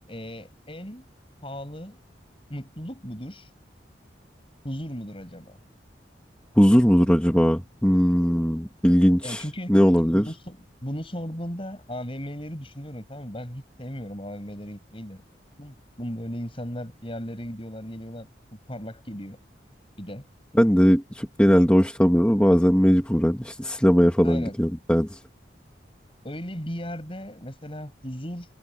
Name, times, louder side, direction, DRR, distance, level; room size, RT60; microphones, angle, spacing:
voice 1, 0.1-1.1 1.4-2.0 2.5-3.5 4.6-5.6 9.2-9.8 10.0-15.2 15.6-19.4 20.0-20.3 24.2-24.6 26.2-28.5, equal, 30° left, 7.9 m, -36 dB
voice 2, 6.6-10.3 20.6-25.2, equal, 5° left, 1.7 m, -19 dB
head